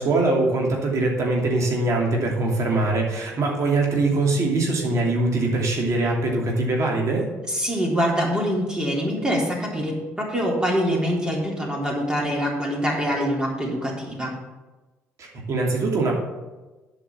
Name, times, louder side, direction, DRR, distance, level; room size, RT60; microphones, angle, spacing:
voice 1, 0.0-7.3 15.2-16.2, right 2 dB, 55° right, -1 dB, 2.8 m, -22 dB
voice 2, 7.5-14.3, equal, 15° right, -3 dB, 3.6 m, -24 dB
8.3 x 5.9 x 7.4 m, 1.2 s
supercardioid pair, 65°, 6 cm